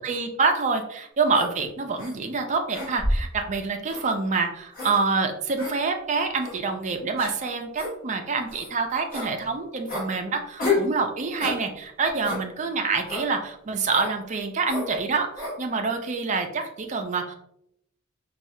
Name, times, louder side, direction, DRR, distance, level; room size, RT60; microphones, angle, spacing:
voice 1, 0.0-17.4, right 4 dB, 35° right, 5 dB, 0.4 m, -26 dB
sound 1, 1.3-1.5 2.0-2.1 2.7-3.3 3.9-4.1 4.7-4.9 5.6-5.7 6.4-6.6 7.2-7.3 7.7-7.9 8.5-8.7 9.1-9.3 9.9-10.1 10.6-10.9 11.4-11.6 12.2-12.4 13.1-13.3 13.9-14.1 14.6-14.9 15.3-15.6, left 2 dB, 45° left, 1.2 m, -29 dB
4.3 x 2.3 x 2.7 m, 0.77 s
head